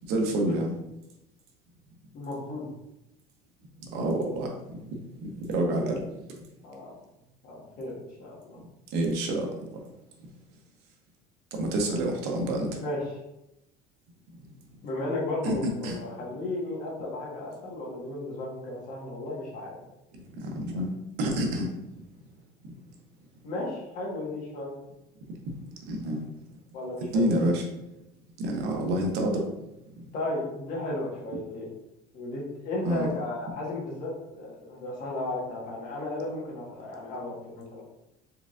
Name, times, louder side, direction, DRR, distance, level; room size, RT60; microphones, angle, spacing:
voice 1, 0.0-0.7 3.8-4.8 5.2-6.0 8.9-9.5 11.5-12.8 15.4-15.5 15.8-15.9 20.4-20.9 21.2-21.7 25.9-26.2 27.1-27.6 28.4-29.4 30.0-30.1 32.8-33.1, right 1 dB, 75° right, 2 dB, 0.9 m, -28 dB
voice 2, 2.1-2.7 6.6-6.9 7.4-8.6 12.8-13.1 14.8-19.8 23.4-24.8 26.7-27.4 30.1-31.7 32.1-37.8, left 2 dB, 55° left, -4 dB, 1.5 m, -34 dB
4.6 x 3.6 x 2.5 m, 0.91 s
cardioid pair, 155°, 17 cm